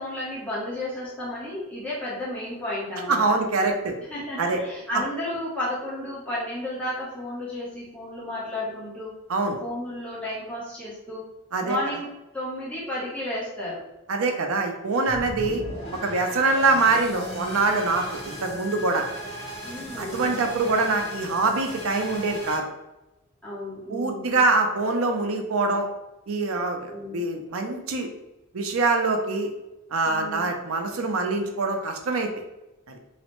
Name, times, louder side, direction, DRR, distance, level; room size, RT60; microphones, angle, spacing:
voice 1, 0.0-3.2 4.1-9.1 9.6-11.2 11.6-12.1 12.3-13.8 19.6-20.4 23.4-24.4 26.9-27.3 30.0-30.6, left 1 dB, 5° left, -8 dB, 0.8 m, -32 dB
voice 2, 3.1-4.0 4.4-4.6 9.3-9.6 11.5-11.8 14.1-15.6 16.0-19.0 20.0-22.7 23.9-25.9 26.3-28.1 28.5-29.5 29.9-32.3 32.9-33.0, right 3 dB, 75° right, 4 dB, 0.5 m, -24 dB
sound 1, 15.1-22.6, equal, 60° left, 1.0 m, -37 dB
3.1 x 2.0 x 2.9 m, 0.98 s
head